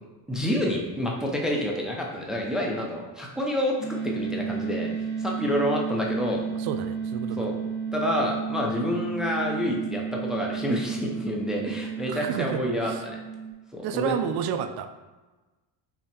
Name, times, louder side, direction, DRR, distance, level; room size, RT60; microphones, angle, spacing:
voice 1, 0.3-3.8 4.0-4.9 5.2-6.4 7.4-7.5 7.9-13.2 13.7-14.1, left 1 dB, ahead, -1 dB, 0.5 m, -28 dB
sound 1, 3.8-13.5, right 6 dB, 50° left, 1.2 m, -32 dB
voice 2, 6.6-7.5 12.0-13.0 13.8-14.9, right 8 dB, 55° right, 9 dB, 0.5 m, -30 dB
5.8 x 2.1 x 4.3 m, 1.2 s
cardioid pair, 125°, 47 cm